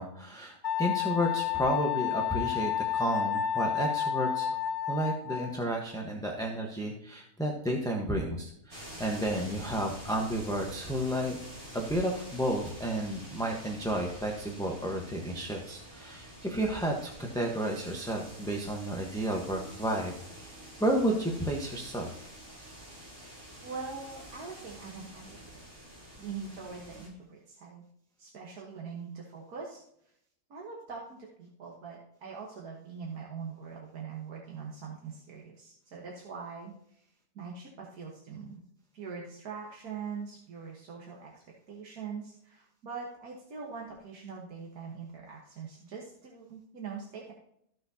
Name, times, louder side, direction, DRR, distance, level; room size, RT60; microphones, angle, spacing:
voice 1, 0.0-4.5 4.9-11.4 11.7-22.1, right 1 dB, 5° left, -1 dB, 0.9 m, -32 dB
Wind instrument woodwind instrument, 0.6-5.6, left 9 dB, 85° left, 1.7 m, -30 dB
sound 1, 8.7-27.1, right 1 dB, 50° right, 3.4 m, -48 dB
voice 2, 23.6-25.6 26.2-27.9 28.2-29.8 30.5-37.0 37.4-38.6 38.9-47.3, right 5 dB, 85° right, -3 dB, 1.9 m, -42 dB
14.0 x 6.3 x 2.8 m, 0.72 s
omnidirectional pair, 1.6 m